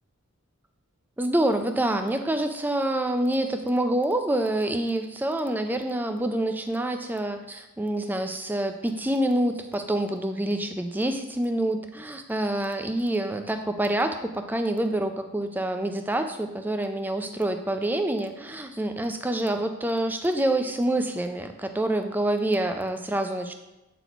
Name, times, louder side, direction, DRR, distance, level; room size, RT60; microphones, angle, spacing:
voice 1, 1.2-23.5, right 1 dB, 10° right, 6 dB, 0.4 m, -27 dB
8.0 x 4.1 x 4.5 m, 1.0 s
head